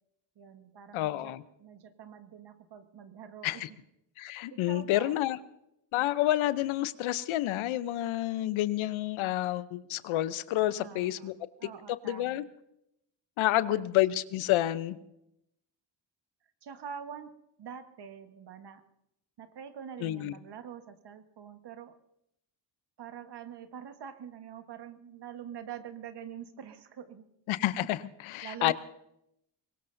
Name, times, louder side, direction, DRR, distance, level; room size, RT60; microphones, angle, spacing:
voice 1, 0.3-3.8 4.5-5.2 6.0-6.1 10.7-12.5 13.4-13.9 16.6-18.8 19.4-22.0 23.0-27.3 27.8-27.9 28.4-28.7, right 8 dB, 55° right, 9 dB, 1.4 m, -45 dB
voice 2, 0.9-1.4 3.4-3.7 4.2-5.4 5.9-11.3 12.0-12.4 13.4-15.0 20.0-20.3 27.5-28.7, left 14 dB, 80° left, 15 dB, 0.8 m, -29 dB
22.5 x 18.0 x 2.7 m, 0.81 s
cardioid pair, 75°, 48 cm